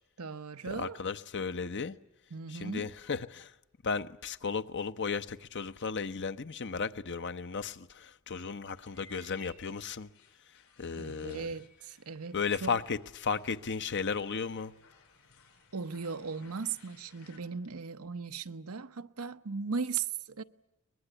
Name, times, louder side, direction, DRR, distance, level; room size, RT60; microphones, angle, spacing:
voice 1, 0.2-1.0 2.3-2.9 11.0-12.8 15.7-20.4, right 5 dB, 90° right, 0.9 m, -38 dB
voice 2, 0.7-1.9 2.5-3.5 3.8-10.1 10.8-11.5 12.3-14.7, left 5 dB, 55° left, 0.8 m, -35 dB
sound 1, 8.7-17.4, left 3 dB, 85° left, 7.7 m, -60 dB
23.5 x 21.0 x 10.0 m
head